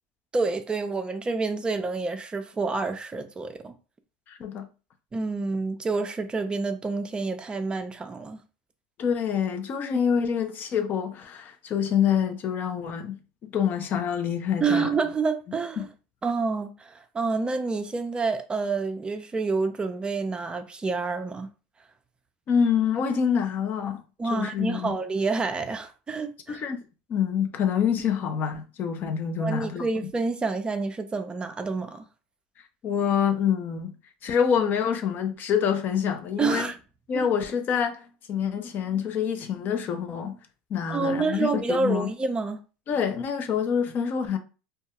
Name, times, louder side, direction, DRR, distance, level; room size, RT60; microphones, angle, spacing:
voice 1, 0.3-3.7 5.1-8.4 14.6-15.9 16.2-21.5 24.2-26.6 29.4-32.0 36.4-36.8 37.1-37.3 40.9-42.6, right 4 dB, 20° right, 0.4 m, -28 dB
voice 2, 4.3-4.7 9.0-14.9 15.8-15.9 22.5-24.0 24.3-25.0 26.5-26.8 27.1-29.9 32.8-33.9 34.2-36.7 37.1-40.4 40.7-42.1 42.9-44.4, left 7 dB, 45° left, 0.5 m, -26 dB
2.2 x 2.2 x 2.8 m
hypercardioid pair, 90°, 5 cm